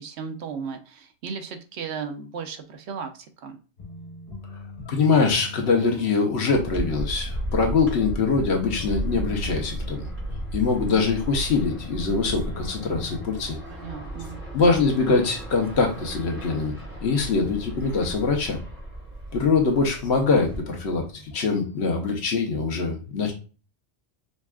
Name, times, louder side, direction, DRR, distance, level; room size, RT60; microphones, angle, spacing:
voice 1, 0.0-3.6 13.7-14.4, right 6 dB, 75° right, 7 dB, 0.9 m, -35 dB
sound 1, 3.8-14.0 14.3-14.5 14.8-14.9 15.3-18.0 18.3-18.9 19.3-19.4 19.8-21.7, left 3 dB, 40° left, 0.9 m, -42 dB
voice 2, 4.9-10.1 10.5-13.6 14.5-16.7 17.0-18.6 19.3-23.3, left 4 dB, 70° left, 2 dB, 1.1 m, -23 dB
sound 2, 6.5-20.6, right 1 dB, 45° right, 2.0 m, -35 dB
5.2 x 2.3 x 2.3 m, 0.35 s
omnidirectional pair, 1.2 m